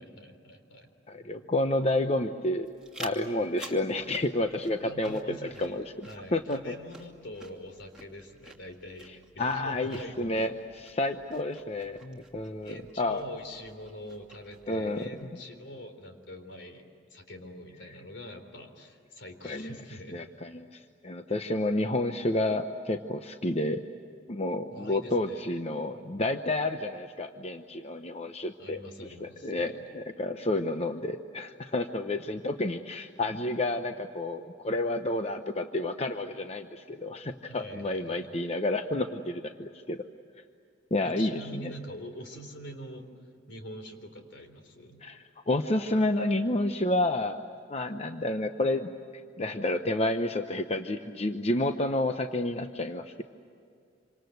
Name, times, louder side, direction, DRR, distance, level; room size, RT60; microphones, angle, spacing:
voice 1, 0.0-0.9 4.8-10.4 12.6-16.8 17.1-20.2 24.7-25.5 28.6-29.9 37.5-38.5 41.0-43.1 43.5-45.0, equal, 70° left, 6 dB, 3.7 m, -44 dB
voice 2, 1.1-2.7 3.0-6.7 9.4-13.2 14.7-15.0 19.4-19.8 20.1-23.8 24.3-28.8 29.2-40.0 40.9-41.7 45.0-47.4 47.7-48.9 49.4-53.2, left 1 dB, 35° left, 7 dB, 0.9 m, -30 dB
sound 1, 2.6-15.4, right 2 dB, 5° right, 2.6 m, -51 dB
27.0 x 26.0 x 8.0 m, 2.4 s
head